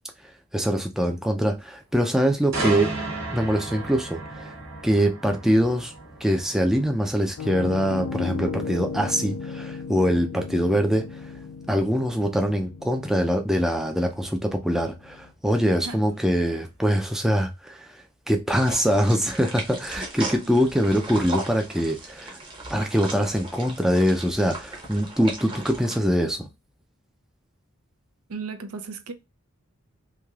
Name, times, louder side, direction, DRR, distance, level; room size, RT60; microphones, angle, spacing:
voice 1, 0.5-2.9 3.3-4.5 4.8-5.9 6.2-11.3 11.7-22.4 22.7-26.5, equal, ahead, 0.4 m, -23 dB
sound 1, 2.5-16.4 16.8-17.0, right 2 dB, 65° right, 1.2 m, -37 dB
Piano, 7.4-15.2, left 5 dB, 90° left, 0.4 m, -36 dB
sound 2, 18.5-26.0, right 2 dB, 25° right, 0.8 m, -37 dB
voice 2, 28.3-29.1, right 4 dB, 90° right, 0.5 m, -35 dB
3.2 x 2.7 x 2.3 m
head